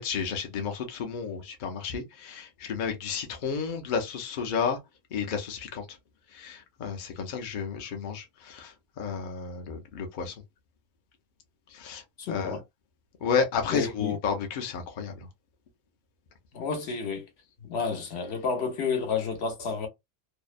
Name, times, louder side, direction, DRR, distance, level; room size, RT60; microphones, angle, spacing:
voice 1, 0.0-4.8 5.1-5.8 6.3-10.3 11.7-12.0 12.3-12.6 13.2-15.3, left 6 dB, 55° left, 0.7 m, -32 dB
voice 2, 12.2-12.6 13.7-14.2 16.5-17.3 17.6-19.9, left 5 dB, 70° left, 1.0 m, -30 dB
2.6 x 2.1 x 2.4 m
omnidirectional pair, 1.1 m